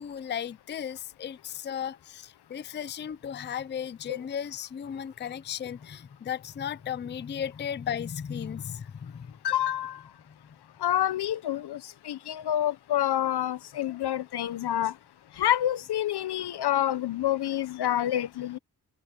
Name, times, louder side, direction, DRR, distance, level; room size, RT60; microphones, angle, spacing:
voice 1, 0.0-9.3 10.3-10.4 12.2-12.3, left 8 dB, 30° left, 0.4 m, -35 dB
voice 2, 9.4-10.1 10.8-15.0 15.3-18.6, left 11 dB, 75° left, 0.9 m, -28 dB
wide cardioid pair, 155°, 40 cm